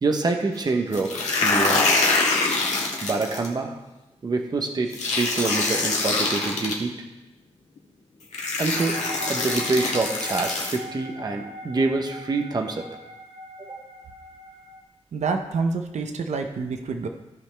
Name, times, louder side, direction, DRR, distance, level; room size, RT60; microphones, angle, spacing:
voice 1, 0.0-1.9 3.0-3.7 4.2-6.9 8.6-9.0 9.3-12.9 13.7-13.8, right 3 dB, 35° right, 3 dB, 0.8 m, -26 dB
sound 1, 0.9-3.5 4.9-6.7 7.8-7.9 8.3-10.8, left 3 dB, 80° left, 1.6 m, -24 dB
sound 2, 8.7-14.8, equal, 60° right, 1.1 m, -40 dB
voice 2, 15.1-17.1, right 4 dB, 80° right, 5 dB, 0.7 m, -27 dB
15.0 x 5.5 x 3.4 m, 1.0 s
wide cardioid pair, 170°, 12 cm